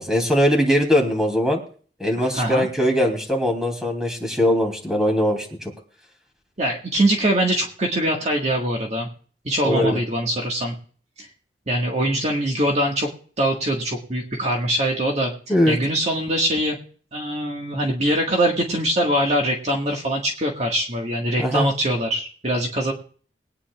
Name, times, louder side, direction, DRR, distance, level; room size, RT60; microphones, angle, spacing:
voice 1, 0.0-1.6 2.0-5.7 9.6-10.0 15.5-15.8 21.4-21.7, equal, 5° right, 2 dB, 3.0 m, -20 dB
voice 2, 2.2-2.7 6.6-9.1 9.5-10.7 11.2-11.3 11.7-13.1 13.4-15.3 15.7-16.8 17.1-22.9, right 1 dB, 40° right, 0 dB, 1.7 m, -23 dB
22.5 x 9.8 x 2.4 m, 0.43 s
head